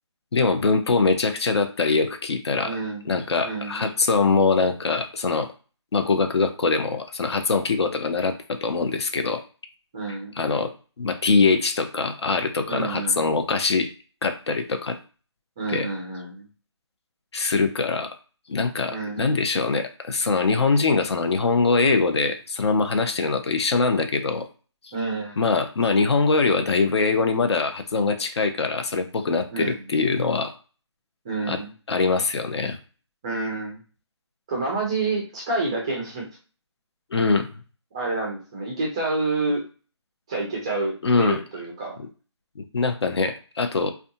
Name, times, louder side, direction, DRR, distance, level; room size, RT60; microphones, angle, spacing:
voice 1, 0.3-2.7 3.1-5.5 5.9-9.4 10.4-13.9 14.2-15.0 15.7-15.9 17.3-18.1 18.5-24.5 24.8-24.9 25.4-30.5 31.5-31.6 31.9-32.8 37.1-37.5 41.0-41.4 42.6-43.9, left 4 dB, 65° left, 7 dB, 0.6 m, -23 dB
voice 2, 2.6-3.1 3.4-3.8 9.9-10.3 12.7-13.3 15.6-16.5 18.9-19.3 24.9-25.4 29.5-29.9 31.2-31.7 33.2-33.8 34.5-36.3 37.9-39.6 40.3-42.0, right 3 dB, 10° right, -2 dB, 0.4 m, -28 dB
2.5 x 2.2 x 2.6 m, 0.37 s
hypercardioid pair, 165°, 15 cm